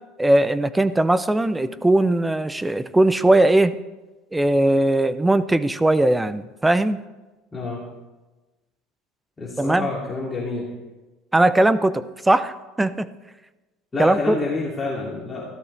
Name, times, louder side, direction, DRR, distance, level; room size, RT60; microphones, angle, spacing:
voice 1, 0.2-3.8 4.3-7.0 9.6-9.9 11.3-13.1 14.0-14.4, right 1 dB, 5° right, 13 dB, 0.5 m, -19 dB
voice 2, 9.4-10.6 13.9-15.5, left 3 dB, 15° left, -6 dB, 2.5 m, -28 dB
24.0 x 15.0 x 3.3 m, 1.1 s
cardioid pair, 180°, 0 cm